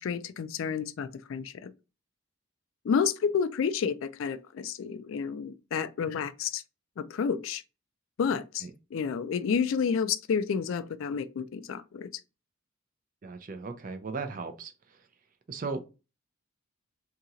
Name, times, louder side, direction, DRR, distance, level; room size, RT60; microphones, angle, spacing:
voice 1, 0.0-1.7 2.8-6.6 7.0-7.6 8.2-12.2, left 6 dB, 70° left, 0.3 m, -30 dB
voice 2, 13.2-14.7 15.5-15.8, right 4 dB, 40° right, 0.4 m, -36 dB
2.8 x 2.8 x 3.6 m
head